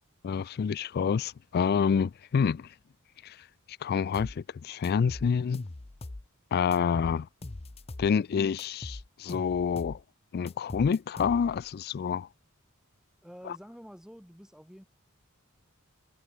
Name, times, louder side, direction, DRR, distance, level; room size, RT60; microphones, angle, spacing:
voice 1, 0.2-2.7 3.2-3.4 3.8-5.6 6.5-7.3 8.0-10.0 10.3-12.3, left 6 dB, 45° left, 0.3 m, -28 dB
sound 1, 4.1-4.4 4.8-6.3 6.7-8.1 8.6-10.0 10.5-11.7, left 2 dB, 30° left, 0.7 m, -41 dB
voice 2, 13.2-14.8, equal, 5° right, 5.8 m, -48 dB
head